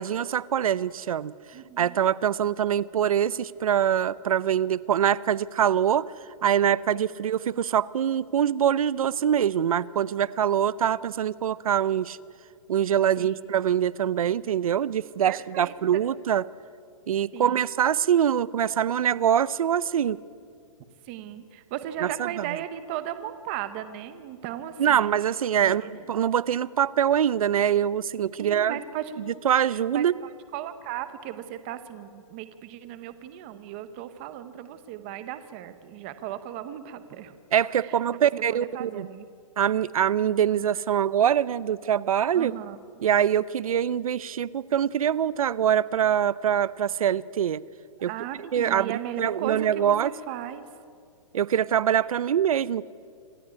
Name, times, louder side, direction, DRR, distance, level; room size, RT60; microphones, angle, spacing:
voice 1, 0.0-1.3 1.8-6.1 6.4-12.2 12.7-16.4 17.1-20.2 24.8-25.8 26.1-28.7 29.4-30.1 37.5-39.1 39.6-42.5 43.0-47.6 48.0-48.1 48.5-50.1 51.3-52.8, right 9 dB, 85° right, 19 dB, 0.6 m, -24 dB
voice 2, 1.5-2.1 6.9-7.0 13.2-13.4 15.3-16.0 17.3-17.7 21.0-25.1 25.6-26.1 28.4-29.1 29.7-37.4 37.8-39.3 42.3-42.8 48.1-50.7, right 11 dB, 20° right, 11 dB, 0.8 m, -37 dB
26.0 x 14.0 x 9.7 m, 2.3 s
hypercardioid pair, 180°, 18 cm